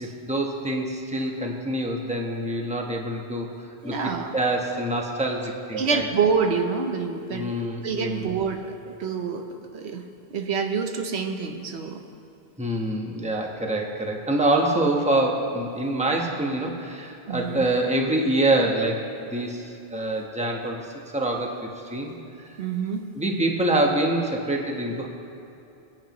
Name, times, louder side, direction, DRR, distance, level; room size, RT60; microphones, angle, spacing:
voice 1, 0.0-3.5 3.8-6.1 7.3-8.5 12.6-20.8 21.1-22.1 23.2-25.1, right 1 dB, 5° right, 0 dB, 1.1 m, -26 dB
voice 2, 3.8-4.3 5.7-7.5 7.8-8.6 9.0-9.4 9.7-10.0 10.3-12.0 17.3-17.7 22.6-23.0, right 5 dB, 85° right, 4 dB, 1.2 m, -26 dB
23.5 x 9.0 x 3.1 m, 2.9 s
omnidirectional pair, 1.1 m